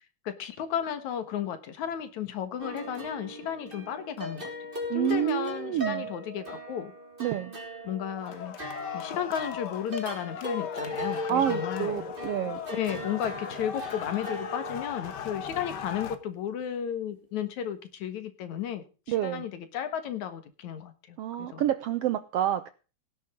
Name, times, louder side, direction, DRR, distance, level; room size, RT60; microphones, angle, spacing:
voice 1, 0.3-4.5 4.9-6.9 7.8-12.1 12.4-21.6, left 9 dB, 75° left, 2.8 m, -34 dB
sound 1, 2.6-16.3, equal, 15° right, 3.0 m, -39 dB
voice 2, 4.9-6.1 7.2-7.5 11.3-12.6 19.1-19.4 21.2-22.7, right 11 dB, 70° right, 1.5 m, -28 dB
sound 2, 8.2-16.2, left 7 dB, 60° left, 1.1 m, -38 dB
17.0 x 11.0 x 3.7 m
omnidirectional pair, 3.4 m